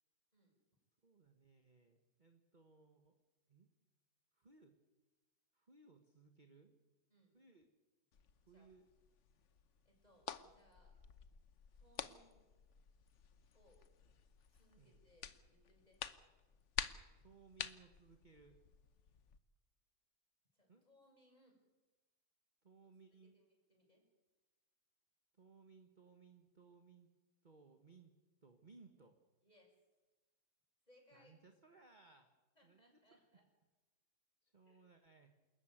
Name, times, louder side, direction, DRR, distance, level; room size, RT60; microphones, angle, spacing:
voice 1, 1.0-3.2 3.5-3.7 4.3-4.7 5.5-6.7 7.3-7.7 8.5-8.9 14.7-15.0 17.2-18.6 20.7-20.9 22.6-23.3 25.3-27.1 27.4-28.1 28.4-29.2 31.1-32.4 32.6-33.3 34.4-35.3, right 4 dB, 30° right, 5 dB, 1.4 m, -64 dB
sound 1, 8.1-19.4, left 7 dB, 50° left, 1.1 m, -50 dB
voice 2, 9.8-11.0 11.7-12.4 13.5-13.8 14.5-16.0 20.5-21.6 23.2-24.0 29.4-29.8 30.8-31.3 32.5-33.4 34.6-34.9, equal, 20° left, 0 dB, 6.7 m, -70 dB
28.0 x 13.5 x 9.3 m, 1.2 s
omnidirectional pair, 1.9 m